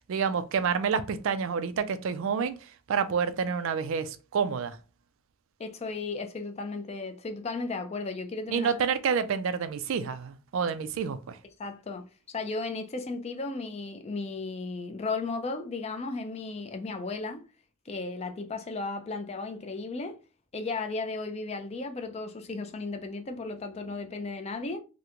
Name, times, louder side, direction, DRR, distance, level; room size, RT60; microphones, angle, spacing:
voice 1, 0.1-2.6 2.9-4.8 8.5-11.4, right 6 dB, 65° right, 0.3 m, -28 dB
voice 2, 5.6-8.7 11.6-17.4 17.9-20.2 20.5-24.8, left 3 dB, 30° left, 0.4 m, -35 dB
2.9 x 2.1 x 3.6 m
head